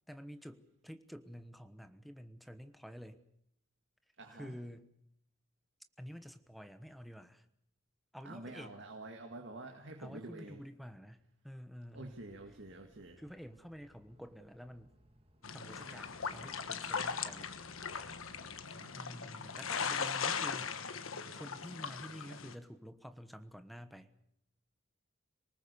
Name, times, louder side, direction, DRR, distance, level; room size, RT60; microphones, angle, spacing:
voice 1, 0.1-3.2 4.3-4.9 6.0-7.5 8.1-8.8 10.0-12.2 13.2-15.0 15.5-17.5 18.9-21.0 21.3-24.1, equal, ahead, 10 dB, 1.2 m, -49 dB
voice 2, 4.2-4.6 8.2-10.6 11.9-13.2 18.7-19.1, right 2 dB, 60° right, 3 dB, 2.1 m, -48 dB
sound 1, 11.9-18.7, equal, 30° right, 2.1 m, -65 dB
sound 2, 15.4-22.5, left 6 dB, 80° left, 1.4 m, -39 dB
26.5 x 19.0 x 6.9 m, 0.72 s
head